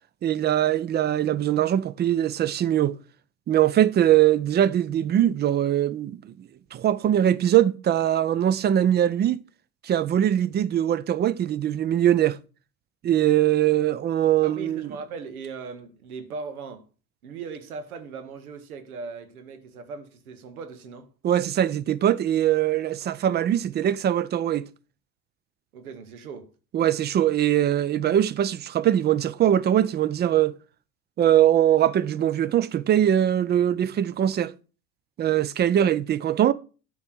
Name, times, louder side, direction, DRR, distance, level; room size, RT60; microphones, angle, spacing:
voice 1, 0.2-3.0 3.5-6.3 6.7-9.4 9.8-12.4 13.0-14.9 21.2-24.7 26.7-30.5 31.2-34.5 35.2-36.5, right 11 dB, 25° right, 0.3 m, -22 dB
voice 2, 14.4-16.8 17.2-21.1 25.7-26.5 35.8-36.0, right 5 dB, 90° right, 1.0 m, -38 dB
8.6 x 3.1 x 5.9 m
hypercardioid pair, 75°, 42 cm